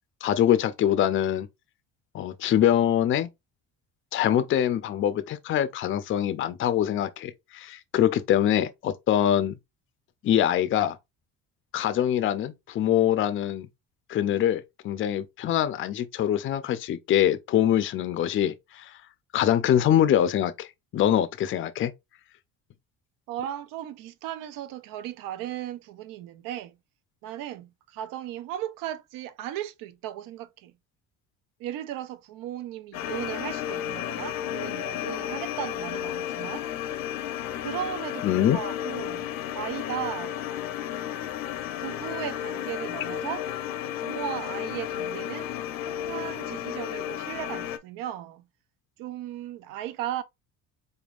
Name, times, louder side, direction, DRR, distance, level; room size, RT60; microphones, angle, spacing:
voice 1, 0.2-1.5 2.1-3.3 4.1-9.6 10.2-11.0 11.7-13.7 14.1-18.9 19.3-20.7 20.9-21.9 38.2-38.6, left 10 dB, 35° left, 0.5 m, -24 dB
voice 2, 23.3-26.8 27.2-30.7 31.6-36.7 37.6-39.3 39.5-40.4 41.8-43.5 44.0-45.5 45.9-48.4 49.0-50.2, right 11 dB, 70° right, 0.6 m, -36 dB
sound 1, 32.9-47.8, left 11 dB, 70° left, 0.7 m, -33 dB
3.9 x 3.5 x 2.4 m
cardioid pair, 135°, 34 cm